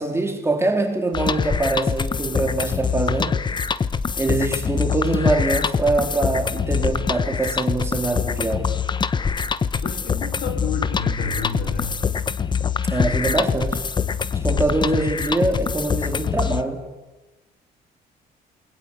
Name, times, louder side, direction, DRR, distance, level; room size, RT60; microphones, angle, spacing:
voice 1, 0.0-3.4 4.2-8.7 12.9-13.8 14.4-16.8, right 2 dB, 15° right, 3.7 m, -23 dB
sound 1, 1.1-16.6, left 6 dB, 25° left, 0.9 m, -24 dB
voice 2, 9.8-12.0, left 4 dB, 65° left, 4.2 m, -31 dB
28.0 x 21.5 x 8.3 m
cardioid pair, 110°, 17 cm